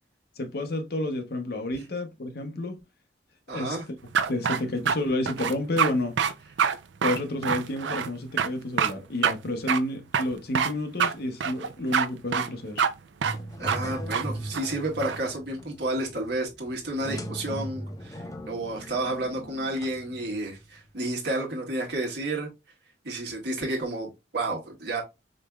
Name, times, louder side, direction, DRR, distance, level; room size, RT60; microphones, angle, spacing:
voice 1, 0.4-2.8 3.5-3.9 4.3-6.2 7.0-12.9, left 1 dB, 55° left, 0.9 m, -30 dB
voice 2, 3.5-3.8 13.6-22.5 23.0-25.0, right 2 dB, 65° right, 1.6 m, -31 dB
sound 1, 4.1-5.0 5.3-5.9 6.2-6.3 6.6-6.8 7.0-8.1 8.4-8.5 8.8-8.9 9.2-9.3 9.7-9.8 10.1-10.7 11.0-11.1 11.4-12.1 12.3-12.5 12.8-12.9 13.2-13.4 13.7-13.8 14.1-14.2 14.5-15.2, right 7 dB, 80° right, 0.5 m, -25 dB
sound 2, 13.2-20.8, equal, 20° left, 0.5 m, -39 dB
5.0 x 3.1 x 2.3 m
head